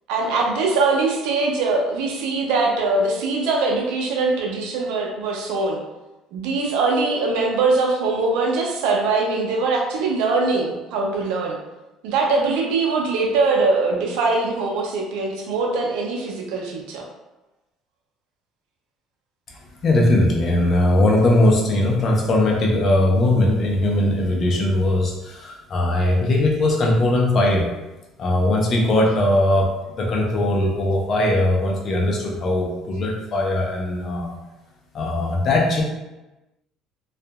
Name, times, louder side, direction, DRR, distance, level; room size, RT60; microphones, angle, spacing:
voice 1, 0.1-5.8 6.3-11.6 12.0-17.0, right 3 dB, 85° right, 0 dB, 0.5 m, -22 dB
voice 2, 19.8-27.7 28.2-29.7 30.0-34.3 34.9-35.8, left 1 dB, 45° left, -1 dB, 0.6 m, -19 dB
2.7 x 2.4 x 2.3 m, 1.0 s
supercardioid pair, 95°, 0 cm